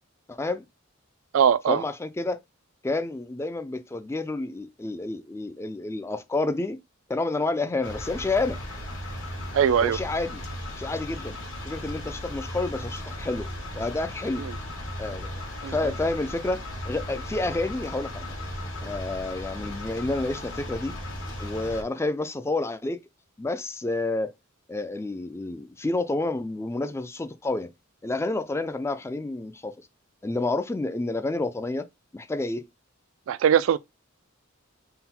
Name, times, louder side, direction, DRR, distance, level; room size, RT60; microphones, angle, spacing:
voice 1, 0.3-0.7 1.7-2.4 2.8-6.8 7.1-8.6 9.8-10.4 10.8-11.4 11.6-13.5 13.7-14.4 15.0-18.4 18.8-21.0 21.4-23.0 23.4-24.3 24.7-27.7 28.0-29.8 30.2-31.9 32.1-32.7, left 2 dB, 15° left, 0.3 m, -29 dB
voice 2, 1.3-1.8 9.5-10.0 14.4-14.5 15.6-15.7 33.3-33.8, right 8 dB, 70° right, 0.3 m, -21 dB
sound 1, 7.8-21.8, left 1 dB, 65° left, 1.5 m, -36 dB
3.8 x 2.1 x 4.2 m
head